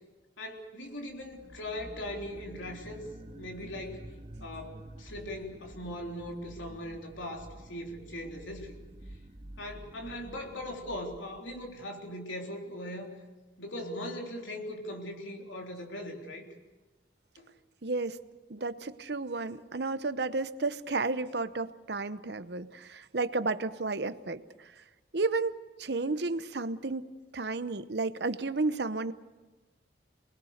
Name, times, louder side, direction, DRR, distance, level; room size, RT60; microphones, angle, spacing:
voice 1, 0.4-3.0 3.4-4.1 4.4-8.8 9.6-13.1 13.6-16.4 17.4-17.5, left 1 dB, 85° left, 1 dB, 3.7 m, -40 dB
sound 1, 1.1-11.7, right 1 dB, 35° right, 0.9 m, -49 dB
voice 2, 17.8-18.2 18.5-24.4 25.1-27.1 27.3-29.1, right 3 dB, 60° right, 13 dB, 0.8 m, -32 dB
28.0 x 20.5 x 6.6 m, 1.2 s
head